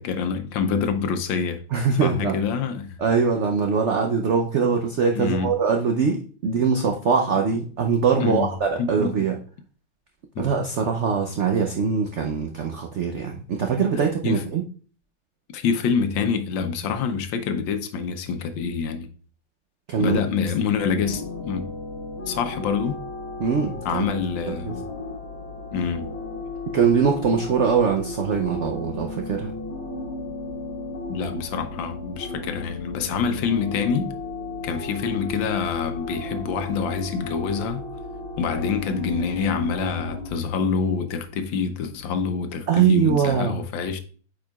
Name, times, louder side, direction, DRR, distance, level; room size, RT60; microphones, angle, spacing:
voice 1, 0.0-1.6 2.0-3.0 5.1-5.5 8.2-9.2 10.3-10.5 14.2-14.4 15.5-19.1 20.0-21.7 22.3-23.0 23.8-24.8 25.7-26.1 31.1-34.1 34.6-37.8 38.4-44.0, left 6 dB, 85° left, 1.5 m, -26 dB
voice 2, 1.7-2.4 3.0-9.4 10.4-14.6 19.9-20.2 23.4-24.0 24.5-24.8 26.7-29.5 42.7-43.6, right 6 dB, 90° right, 0.6 m, -22 dB
sound 1, 21.0-40.3, left 3 dB, 35° left, 1.6 m, -34 dB
8.8 x 4.8 x 2.3 m
omnidirectional pair, 2.0 m